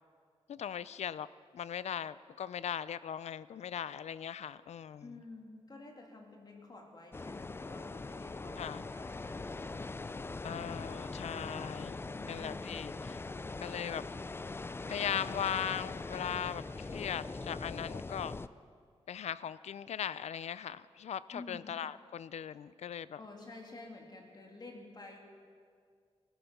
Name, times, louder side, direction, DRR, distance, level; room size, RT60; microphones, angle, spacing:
voice 1, 0.5-1.3 1.5-5.0 8.6-8.8 10.4-12.0 12.3-13.2 13.6-14.1 14.9-18.4 19.1-23.2, left 9 dB, 90° left, 17 dB, 0.4 m, -39 dB
voice 2, 5.0-9.7 12.1-12.8 21.3-21.7 23.1-25.2, left 2 dB, 40° left, 1 dB, 2.5 m, -50 dB
sound 1, 7.1-18.5, left 3 dB, 20° left, 0.4 m, -41 dB
19.0 x 12.5 x 5.9 m, 2.1 s
wide cardioid pair, 115°, 11 cm